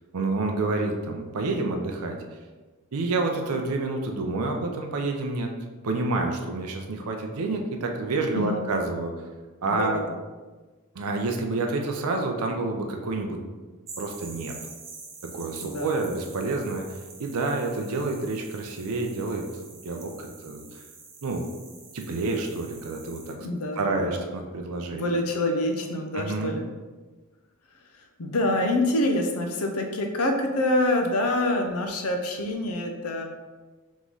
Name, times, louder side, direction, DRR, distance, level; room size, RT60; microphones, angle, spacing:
voice 1, 0.1-2.2 2.9-5.5 5.8-9.1 9.6-10.0 10.9-13.4 14.0-14.5 15.2-20.7 21.2-21.5 21.9-23.3 23.8-25.0 26.1-26.5, right 3 dB, 80° right, 2 dB, 0.5 m, -28 dB
voice 2, 8.3-8.7 9.6-10.2 15.6-16.0 23.3-24.2 24.9-26.7 28.2-33.2, left 1 dB, 75° left, 3 dB, 0.6 m, -26 dB
sound 1, 13.9-23.3, right 4 dB, 30° right, 0.7 m, -46 dB
3.6 x 3.1 x 3.9 m, 1.3 s
head